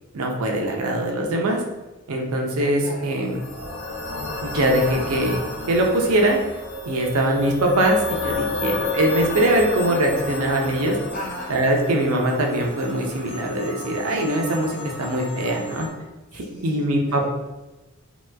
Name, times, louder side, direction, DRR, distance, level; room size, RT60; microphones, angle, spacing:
voice 1, 0.1-1.6 2.1-3.4 4.4-5.4 5.7-6.4 6.9-11.0 11.5-15.9 16.3-17.3, right 1 dB, 90° right, 1 dB, 0.6 m, -22 dB
voice 2, 2.8-3.1 11.1-11.5 16.5-17.3, equal, 40° left, -3 dB, 0.8 m, -36 dB
sound 1, 3.1-15.9, left 2 dB, 80° left, 0.8 m, -31 dB
2.9 x 2.2 x 3.3 m, 1.1 s
head